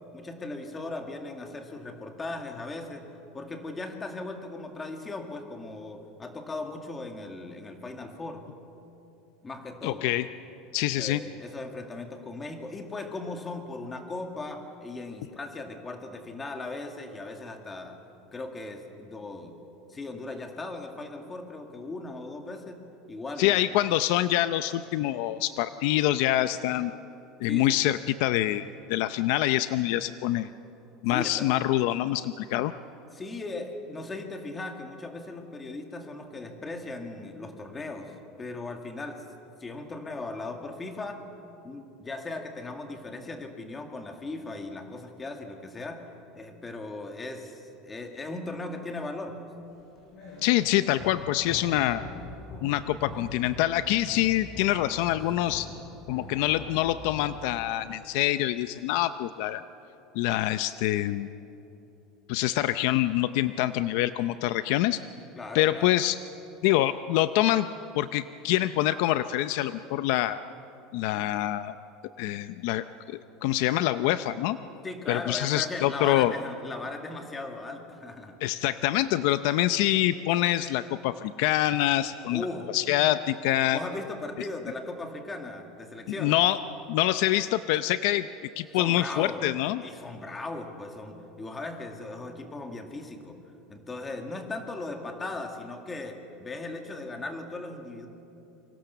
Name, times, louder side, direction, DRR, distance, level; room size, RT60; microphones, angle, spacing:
voice 1, 0.1-3.1 3.3-8.4 9.4-10.1 11.0-18.0 18.3-19.6 19.9-23.6 27.4-27.9 31.1-31.6 33.1-39.3 39.6-41.2 41.6-46.0 46.3-49.5 65.4-66.0 74.8-78.4 82.3-82.7 83.7-86.4 88.7-89.5 89.8-93.4 93.7-98.1, left 2 dB, 10° left, 4 dB, 2.0 m, -38 dB
voice 2, 9.8-10.3 10.7-11.2 23.4-26.9 27.4-30.5 31.0-32.7 50.4-52.0 52.6-55.7 56.1-59.6 60.1-61.3 62.3-65.0 65.5-66.2 66.6-67.7 67.9-70.4 70.9-71.7 72.2-74.6 75.1-76.3 78.4-82.5 82.7-83.8 86.2-86.6 86.9-88.3 88.6-89.8, left 14 dB, 60° left, 12 dB, 0.6 m, -25 dB
sound 1, 49.7-57.8, left 2 dB, 30° left, 7.8 m, -43 dB
28.0 x 25.0 x 6.9 m, 2.9 s
cardioid pair, 180°, 0 cm